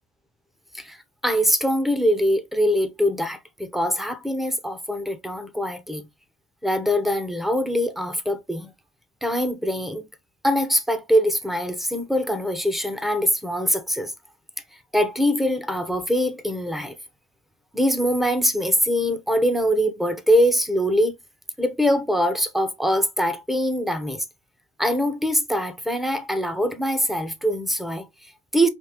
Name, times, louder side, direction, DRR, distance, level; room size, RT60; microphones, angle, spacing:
voice 1, 0.7-6.1 6.6-8.7 9.2-10.1 10.4-14.1 14.9-17.0 17.7-21.1 21.6-24.2 24.8-28.7, equal, ahead, 0.8 m, -23 dB
5.2 x 2.7 x 2.9 m
cardioid pair, 90°, 30 cm